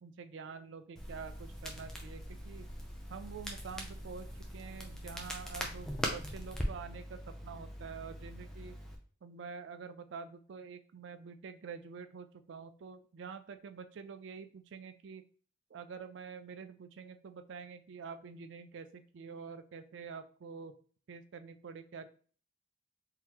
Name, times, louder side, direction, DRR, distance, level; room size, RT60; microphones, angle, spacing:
voice 1, 0.0-2.7 3.1-8.8 9.2-15.2 15.7-20.7 21.1-22.1, right 5 dB, 70° right, 9 dB, 0.4 m, -47 dB
Crackle, 1.0-9.0, equal, 5° left, 0.4 m, -41 dB
3.7 x 2.8 x 2.9 m, 0.43 s
head